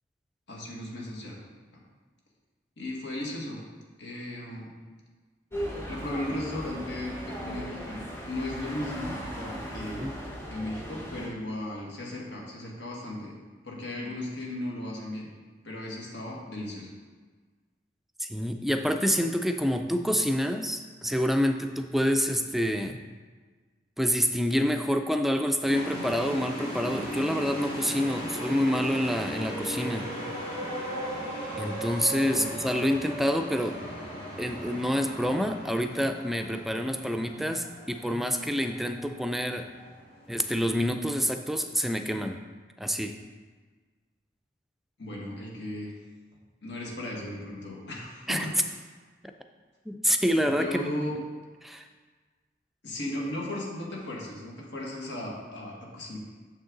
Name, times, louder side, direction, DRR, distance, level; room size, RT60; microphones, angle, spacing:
voice 1, 0.5-1.4 2.8-3.6 4.0-4.7 5.9-10.0 10.5-13.3 13.6-15.3 15.6-16.9 32.3-32.6 45.0-45.9 46.6-48.6 50.6-51.2 52.8-56.2, left 1 dB, 80° left, -2 dB, 1.7 m, -36 dB
sound 1, 5.5-11.3, equal, 15° left, 1.0 m, -38 dB
voice 2, 18.2-23.0 24.0-30.1 31.6-33.9 34.4-39.7 40.3-42.4 42.8-43.2 48.3-48.5 49.9-50.8 51.6-51.8, equal, ahead, 6 dB, 0.3 m, -27 dB
sound 2, 25.6-40.3, equal, 60° left, 2.1 m, -37 dB
6.7 x 6.3 x 3.8 m, 1.4 s
head